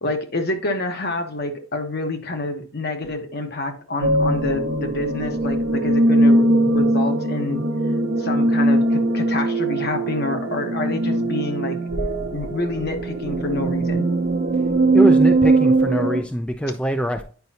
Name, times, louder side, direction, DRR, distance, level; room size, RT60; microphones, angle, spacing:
voice 1, 0.0-7.6 8.2-11.8 12.3-14.1, left 2 dB, 55° left, 5 dB, 1.2 m, -27 dB
sound 1, 4.0-16.2, right 2 dB, 70° right, 1.0 m, -20 dB
voice 2, 14.9-17.2, equal, 5° left, 6 dB, 0.4 m, -23 dB
9.4 x 5.2 x 2.8 m, 0.40 s
head